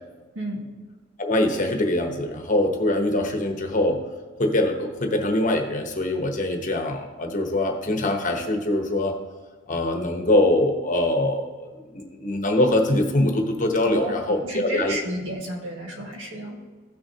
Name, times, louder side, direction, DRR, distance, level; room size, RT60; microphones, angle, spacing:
voice 1, 0.3-0.7 13.8-16.6, right 1 dB, 70° right, 0 dB, 1.8 m, -32 dB
voice 2, 1.2-4.0 4.4-9.2 9.7-15.0, left 1 dB, 40° left, 3 dB, 1.0 m, -23 dB
15.5 x 6.3 x 2.8 m, 1.4 s
head